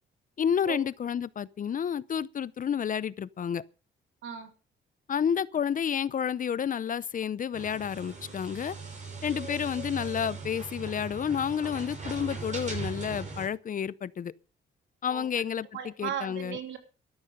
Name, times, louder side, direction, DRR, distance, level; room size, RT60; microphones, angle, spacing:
voice 1, 0.4-3.6 5.1-8.8 9.2-14.3 15.0-16.6, left 8 dB, 45° left, 0.6 m, -30 dB
voice 2, 4.2-4.5 15.1-15.4 15.7-16.8, right 9 dB, 75° right, 2.9 m, -37 dB
sound 1, 7.5-13.5, right 4 dB, 35° right, 6.2 m, -39 dB
13.0 x 12.5 x 5.4 m
cardioid pair, 90°, 20 cm